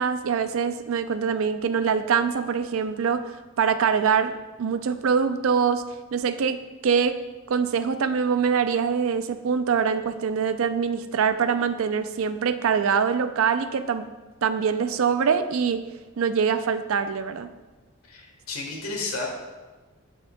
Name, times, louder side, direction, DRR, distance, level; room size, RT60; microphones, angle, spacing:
voice 1, 0.0-4.3 4.6-5.8 6.1-7.2 7.5-14.0 14.4-15.8 16.2-17.5, right 6 dB, 65° right, 11 dB, 0.4 m, -24 dB
voice 2, 18.1-19.3, left 3 dB, 70° left, 0 dB, 1.4 m, -32 dB
7.8 x 7.2 x 2.2 m, 1.2 s
head